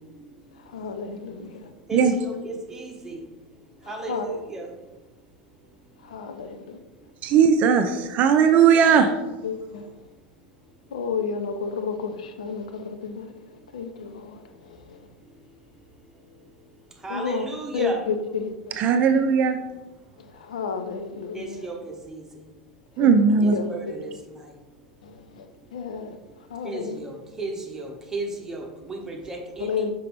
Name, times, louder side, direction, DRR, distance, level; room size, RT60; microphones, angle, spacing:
voice 1, 0.6-1.7 3.8-4.3 6.0-6.8 9.4-9.9 10.9-15.1 17.1-17.5 17.7-18.8 20.2-21.7 23.0-23.2 23.5-24.0 25.0-25.4 25.7-26.2 26.5-27.0 29.6-29.9, left 5 dB, 70° left, 7 dB, 0.6 m, -32 dB
voice 2, 1.9-3.2 3.9-4.7 17.0-18.0 21.3-22.2 23.4-24.1 26.6-29.9, right 2 dB, 15° right, 0 dB, 1.3 m, -34 dB
voice 3, 7.2-9.1 18.8-19.6 23.0-23.5, right 6 dB, 40° right, 8 dB, 0.5 m, -18 dB
5.7 x 5.2 x 3.4 m, 1.1 s
figure-of-eight pair, 80°, 4 cm